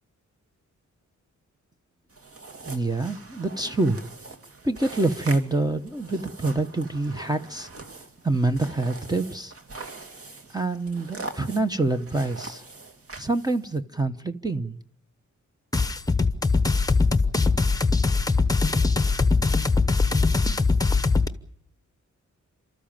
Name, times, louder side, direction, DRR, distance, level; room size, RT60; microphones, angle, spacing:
sound 1, 2.1-13.8, right 3 dB, 50° right, 2.8 m, -42 dB
voice 1, 2.6-4.0 4.6-7.7 8.2-9.5 10.5-12.6 13.2-14.8, right 2 dB, 15° right, 0.9 m, -26 dB
sound 2, 15.7-21.3, left 4 dB, 10° left, 0.9 m, -21 dB
29.5 x 13.5 x 8.8 m
wide cardioid pair, 180°, 30 cm